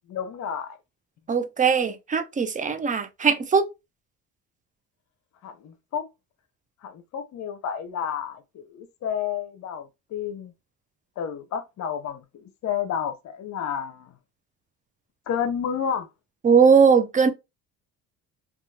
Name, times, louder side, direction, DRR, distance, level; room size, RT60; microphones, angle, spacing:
voice 1, 0.1-0.8 5.4-6.1 6.8-10.5 11.2-14.1 15.3-16.1, left 8 dB, 55° left, 0.7 m, -31 dB
voice 2, 1.3-3.7 16.4-17.3, right 6 dB, 25° right, 0.5 m, -19 dB
2.8 x 2.3 x 2.3 m
supercardioid pair, 75°, 33 cm